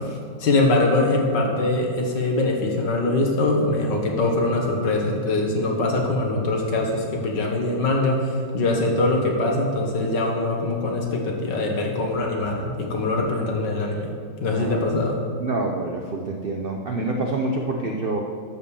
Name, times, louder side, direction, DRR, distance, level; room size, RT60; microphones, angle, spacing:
voice 1, 0.4-14.1 14.4-15.2, left 2 dB, 65° left, 0 dB, 2.1 m, -23 dB
voice 2, 14.5-15.0 15.4-18.2, right 2 dB, 70° right, 1 dB, 0.5 m, -27 dB
12.5 x 5.2 x 7.1 m, 2.2 s
omnidirectional pair, 2.1 m